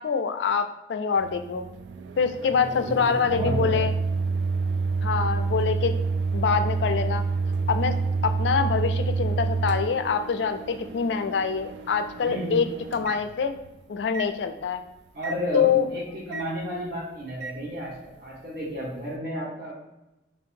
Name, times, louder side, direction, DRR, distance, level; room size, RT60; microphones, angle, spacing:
voice 1, 0.0-1.7 2.2-3.9 5.0-5.9 6.3-7.2 7.7-8.0 8.2-13.5 13.9-14.8 15.5-15.9, left 6 dB, 80° left, 9 dB, 0.4 m, -25 dB
Microwave oven, 1.2-13.7 14.1-14.3 15.2-15.4 16.3-16.5 17.4-17.6, right 4 dB, 75° right, 0.3 m, -29 dB
voice 2, 2.4-3.8 12.2-12.6 15.1-19.7, equal, 60° right, -4 dB, 1.4 m, -32 dB
3.1 x 2.7 x 4.3 m, 0.95 s
head